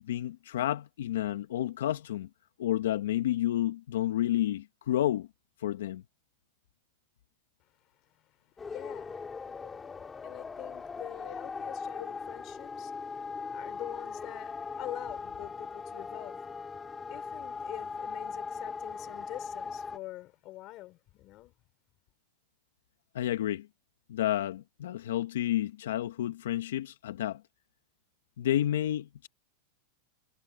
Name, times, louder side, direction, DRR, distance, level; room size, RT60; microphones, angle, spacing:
voice 1, 0.0-2.3 2.6-5.3 5.6-6.0 11.2-11.3 12.0-12.1 23.1-23.7 24.1-27.4 28.4-29.3, left 12 dB, 80° left, 1.1 m, -30 dB
voice 2, 8.6-9.2 10.2-16.4 17.1-21.5, left 16 dB, 40° left, 4.0 m, -45 dB
sound 1, 8.6-20.0, left 5 dB, 15° left, 2.3 m, -39 dB
supercardioid pair, 140°, 0 cm